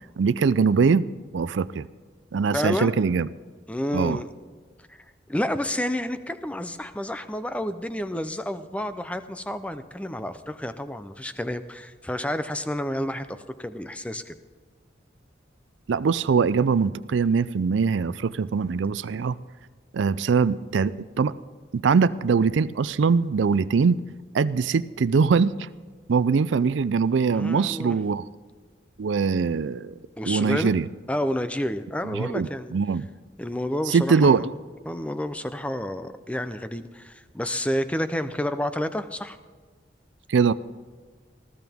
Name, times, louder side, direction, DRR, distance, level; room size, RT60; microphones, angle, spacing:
voice 1, 0.2-1.1 1.3-1.9 2.3-3.3 3.9-4.2 15.9-19.4 19.9-21.3 21.7-24.0 24.3-25.7 26.1-28.2 29.0-29.9 30.3-30.9 32.1-33.1 33.9-34.5 40.3-40.5, right 5 dB, 85° right, 16 dB, 0.4 m, -22 dB
voice 2, 2.5-2.9 3.7-4.3 4.9-5.0 5.3-14.3 27.3-28.0 30.2-30.7 31.1-32.7 33.4-34.5 34.9-39.4, left 1 dB, 5° left, 10 dB, 0.5 m, -30 dB
19.5 x 14.0 x 3.6 m, 1.5 s
head